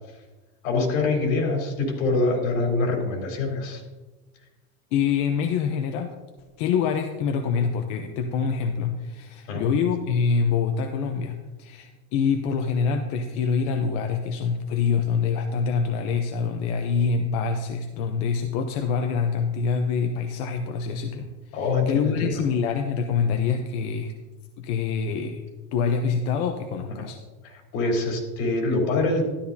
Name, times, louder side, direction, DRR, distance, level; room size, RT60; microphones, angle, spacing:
voice 1, 0.6-3.8 9.5-9.6 21.5-22.4 27.0-27.1 27.4-29.2, left 3 dB, 80° left, 0 dB, 3.7 m, -24 dB
voice 2, 4.9-6.2 6.6-21.6 21.9-24.1 24.6-25.4 25.7-27.2, left 6 dB, 55° left, 5 dB, 0.8 m, -25 dB
12.5 x 11.5 x 2.8 m, 1.2 s
cardioid pair, 160°, 39 cm